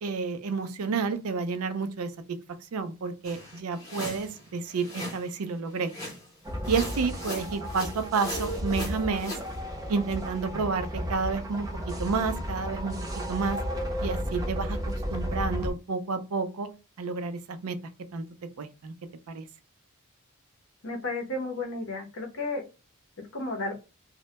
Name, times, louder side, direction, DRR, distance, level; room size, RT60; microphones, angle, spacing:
voice 1, 0.0-2.1 2.7-5.9 6.7-9.3 9.9-11.7 12.0-13.0 13.3-13.6 14.0-16.7 17.0-17.8 18.1-18.2 18.6-18.9 19.3-19.5, right 4 dB, 75° right, 0.4 m, -30 dB
sound 1, 3.2-5.3 5.8-6.4 6.6-9.5, left 1 dB, 15° left, 0.8 m, -40 dB
sound 2, 6.4-15.7, equal, 15° right, 0.6 m, -33 dB
voice 2, 20.8-22.7 23.3-23.8, left 2 dB, 60° left, 0.7 m, -33 dB
2.1 x 2.1 x 2.8 m
head